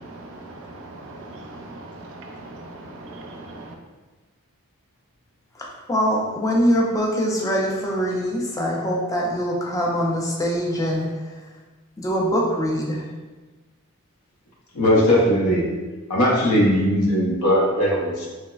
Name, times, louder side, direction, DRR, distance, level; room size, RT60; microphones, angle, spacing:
voice 1, 0.0-3.7, right 2 dB, 60° right, 2 dB, 0.4 m, -40 dB
voice 2, 5.6-11.1 12.0-13.0, equal, 15° left, -2 dB, 0.3 m, -23 dB
voice 3, 14.7-15.7 16.1-18.3, equal, 90° left, -2 dB, 0.6 m, -19 dB
3.1 x 2.0 x 2.3 m, 1.2 s
head